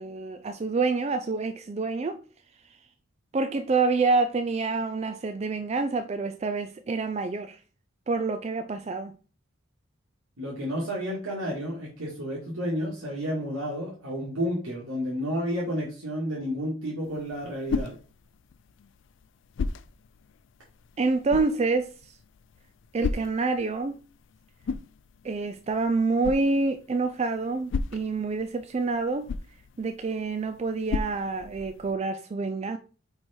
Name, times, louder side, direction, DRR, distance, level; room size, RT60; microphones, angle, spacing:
voice 1, 0.0-2.2 3.3-7.6 8.1-9.2 21.0-22.1 22.9-24.0 25.2-29.3 29.8-32.8, right 3 dB, 30° right, 0.3 m, -27 dB
voice 2, 10.4-17.9, equal, 90° right, 1.9 m, -31 dB
sound 1, 17.0-31.9, left 4 dB, 60° left, 0.3 m, -37 dB
4.8 x 4.6 x 4.3 m
head